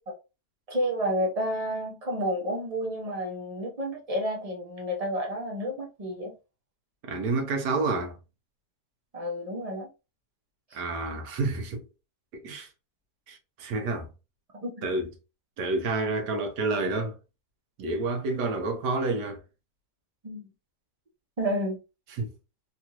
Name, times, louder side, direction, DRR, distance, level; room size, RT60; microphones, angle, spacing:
voice 1, 0.7-6.3 9.1-9.9 10.7-10.8 14.6-14.9 20.2-20.5 21.4-21.8, equal, 40° right, 0.5 m, -30 dB
voice 2, 7.1-8.2 10.7-11.8 12.3-12.7 13.3-14.1 14.8-15.1 15.6-17.2 17.8-19.4 22.2-22.3, right 3 dB, 90° right, 1.4 m, -29 dB
3.4 x 2.5 x 2.8 m
omnidirectional pair, 1.7 m